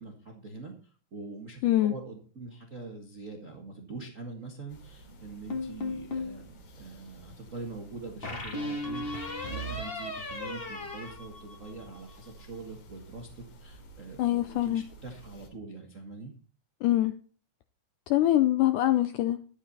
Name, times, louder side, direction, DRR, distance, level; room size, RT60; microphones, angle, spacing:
voice 1, 0.0-16.3, right 3 dB, 70° right, 0.7 m, -44 dB
voice 2, 1.6-1.9 14.2-14.8 16.8-17.2 18.1-19.4, left 14 dB, 85° left, 1.8 m, -24 dB
sound 1, 4.7-15.5, right 2 dB, 70° left, 3.9 m, -52 dB
sound 2, 5.5-6.4 8.2-12.0, left 1 dB, 50° left, 0.6 m, -36 dB
11.5 x 9.8 x 4.1 m
omnidirectional pair, 4.3 m